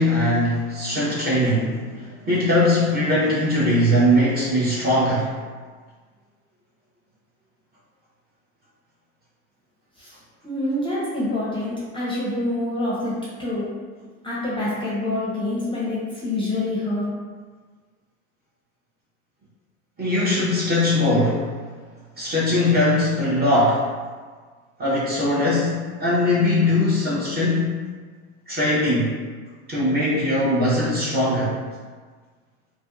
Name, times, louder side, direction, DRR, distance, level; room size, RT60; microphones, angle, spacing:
voice 1, 0.0-5.3 20.0-21.5 22.1-23.9 24.8-27.7 28.5-29.1 29.7-31.5, left 1 dB, 20° right, -8 dB, 0.7 m, -20 dB
voice 2, 10.4-13.1 13.4-13.7 14.2-17.0, left 1 dB, 10° left, -8 dB, 0.7 m, -26 dB
2.6 x 2.2 x 2.4 m, 1.5 s
hypercardioid pair, 95°, 44 cm